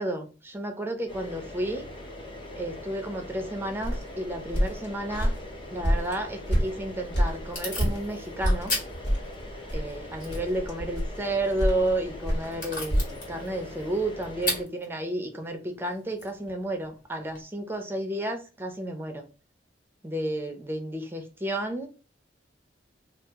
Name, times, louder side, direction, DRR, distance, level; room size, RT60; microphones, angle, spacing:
voice 1, 0.0-1.9 2.6-5.3 5.7-8.7 9.7-19.3 20.0-21.9, right 1 dB, 15° right, 4 dB, 0.6 m, -32 dB
sound 1, 1.1-14.6, left 1 dB, 30° left, 0.7 m, -42 dB
sound 2, 3.8-8.0 8.4-13.1, equal, 70° left, 1.8 m, -27 dB
Packing tape duct tape / Tearing, 6.6-17.4, left 2 dB, 50° left, 1.7 m, -39 dB
2.8 x 2.5 x 3.5 m, 0.34 s
head